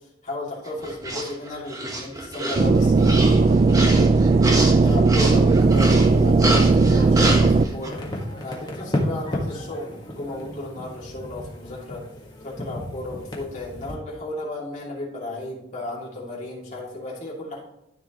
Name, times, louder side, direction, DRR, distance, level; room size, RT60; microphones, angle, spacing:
voice 1, 0.2-4.3 4.8-8.0 8.4-12.0 12.4-17.6, left 2 dB, 40° left, -5 dB, 2.8 m, -34 dB
sound 1, 0.7-7.9, right 1 dB, 20° right, 1.3 m, -27 dB
sound 2, 2.6-7.6, right 3 dB, 35° right, 0.4 m, -17 dB
sound 3, 5.6-13.9, left 1 dB, 25° left, 1.6 m, -33 dB
13.5 x 4.9 x 3.0 m, 0.85 s
head